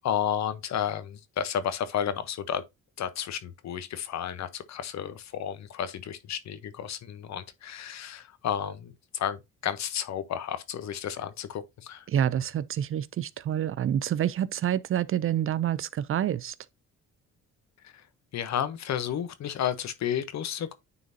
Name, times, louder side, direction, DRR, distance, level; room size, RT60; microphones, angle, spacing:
voice 1, 0.0-2.6 3.0-12.0 17.8-17.9 18.3-20.7, left 9 dB, 65° left, 0.9 m, -32 dB
voice 2, 12.1-16.5, right 10 dB, 45° right, 0.4 m, -27 dB
9.5 x 3.9 x 2.7 m
cardioid pair, 90°, 30 cm